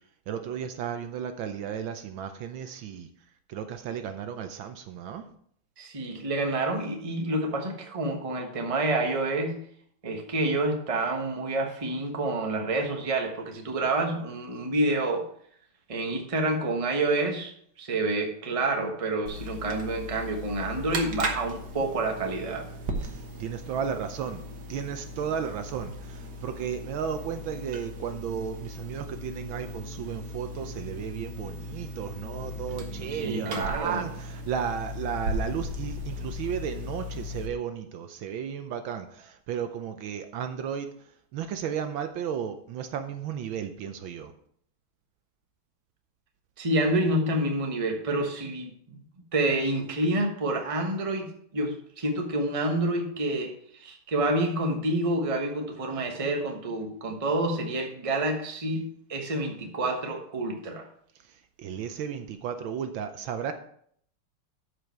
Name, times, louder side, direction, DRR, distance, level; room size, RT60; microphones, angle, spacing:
voice 1, 0.3-3.1 3.5-5.3 23.0-24.4 24.7-40.9 41.3-44.3 61.2-63.5, right 8 dB, 70° right, 8 dB, 1.4 m, -34 dB
voice 2, 5.8-9.6 10.0-15.3 15.9-17.5 17.8-22.7 33.2-34.1 46.6-49.0 49.3-60.9, right 2 dB, 20° right, 2 dB, 1.0 m, -28 dB
sound 1, 19.3-37.5, equal, 55° right, 1.8 m, -37 dB
12.5 x 5.1 x 4.6 m, 0.64 s
omnidirectional pair, 2.4 m